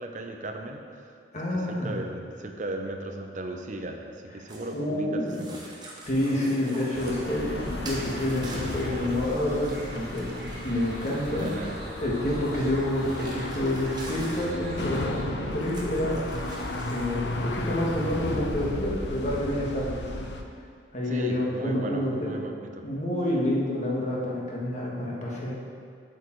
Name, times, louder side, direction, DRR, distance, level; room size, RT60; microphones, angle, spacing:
voice 1, 0.0-1.1 1.5-5.6 11.3-11.8 21.1-22.8, right 2 dB, 45° right, 4 dB, 0.7 m, -36 dB
voice 2, 1.3-2.0 4.7-5.5 6.1-11.5 12.0-16.2 16.9-20.1 20.9-22.3 22.8-25.5, left 1 dB, 40° left, -4 dB, 1.6 m, -28 dB
sound 1, 4.5-4.8 5.3-7.2 7.8-11.7 12.5-14.5 15.5-17.2, right 2 dB, 25° right, 1.2 m, -46 dB
sound 2, 6.0-15.2, right 1 dB, 60° right, 1.6 m, -43 dB
sound 3, 6.9-20.4, left 2 dB, 70° left, 0.7 m, -34 dB
7.9 x 6.9 x 4.6 m, 2.2 s
head